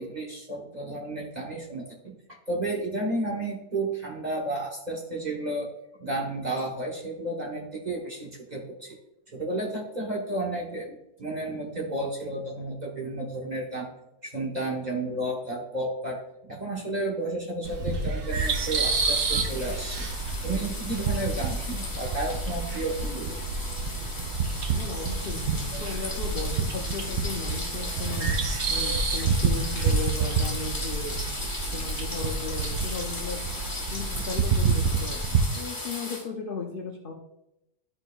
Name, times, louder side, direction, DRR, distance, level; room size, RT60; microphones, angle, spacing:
voice 1, 0.0-2.1 2.5-5.7 6.0-9.0 9.3-13.9 14.2-20.0 20.4-23.4 25.7-25.8 34.2-34.3, right 2 dB, 35° right, -2 dB, 0.9 m, -32 dB
sound 1, 17.7-35.4, right 4 dB, 70° right, 0.5 m, -28 dB
sound 2, 18.3-36.2, left 2 dB, 15° left, 0.8 m, -36 dB
voice 2, 24.7-28.3 28.7-31.2 31.4-33.4 33.9-35.2 35.5-37.1, left 4 dB, 55° left, 1 dB, 0.6 m, -36 dB
11.5 x 4.4 x 2.3 m, 0.86 s
omnidirectional pair, 1.7 m